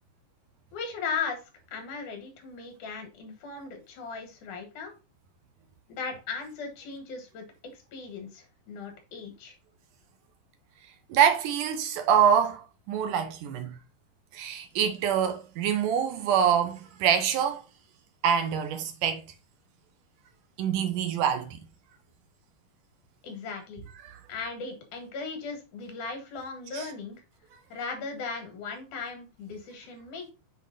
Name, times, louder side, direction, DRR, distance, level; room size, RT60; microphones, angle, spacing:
voice 1, 0.7-1.4 1.7-4.9 5.9-7.5 7.7-9.5 23.2-23.8 24.3-27.2 27.7-30.3, left 5 dB, 75° left, 3.3 m, -37 dB
voice 2, 11.1-13.8 14.3-17.6 18.2-19.2 20.6-21.6 24.0-24.2 26.7-26.9, right 8 dB, 90° right, 2.7 m, -25 dB
8.0 x 4.3 x 4.0 m
omnidirectional pair, 3.6 m